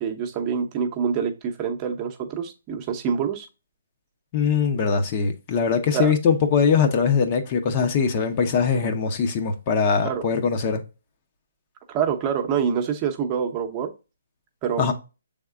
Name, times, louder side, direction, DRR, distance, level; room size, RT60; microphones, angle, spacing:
voice 1, 0.0-3.5 5.9-6.1 10.0-10.3 11.9-13.9 14.6-14.8, right 7 dB, 25° right, 0.8 m, -26 dB
voice 2, 4.3-10.8 14.8-14.9, left 6 dB, 35° left, 0.7 m, -21 dB
6.2 x 3.6 x 2.4 m
hypercardioid pair, 140°, 0 cm